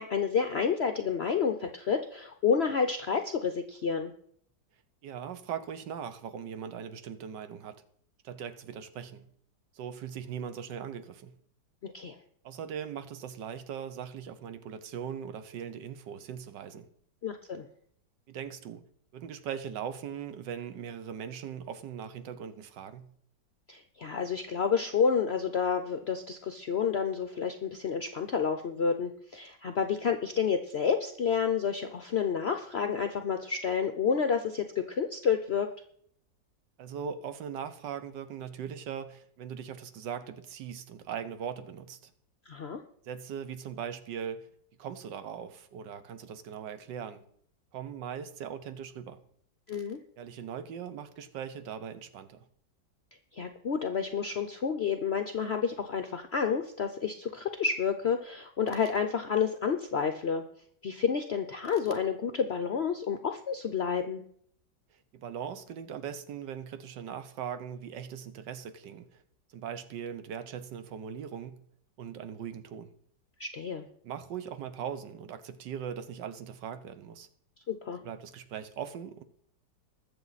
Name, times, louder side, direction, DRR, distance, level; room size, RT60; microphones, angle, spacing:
voice 1, 0.0-4.1 11.8-12.1 17.2-17.7 23.7-35.7 42.5-42.8 49.7-50.0 53.3-60.4 60.8-64.2 73.4-73.9 77.7-78.0, left 6 dB, 60° left, 0.6 m, -30 dB
voice 2, 5.0-7.8 8.2-9.3 9.7-11.3 12.4-16.9 18.3-18.8 19.1-23.1 36.8-42.1 43.0-44.5 44.8-47.2 47.7-49.2 50.2-52.5 65.1-69.2 69.5-71.6 72.0-72.9 74.0-77.3 78.0-79.2, right 8 dB, 75° right, 1.5 m, -40 dB
21.0 x 7.1 x 4.0 m
omnidirectional pair, 1.9 m